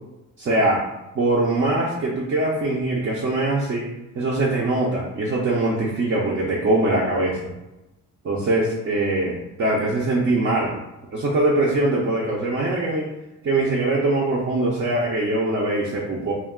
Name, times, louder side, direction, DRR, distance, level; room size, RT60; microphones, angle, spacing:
voice 1, 0.4-0.8 1.1-3.9 4.2-7.5 8.2-10.8 11.1-13.1 13.4-16.3, right 2 dB, 40° right, -4 dB, 0.6 m, -22 dB
2.3 x 2.2 x 3.6 m, 0.97 s
cardioid pair, 90°, 30 cm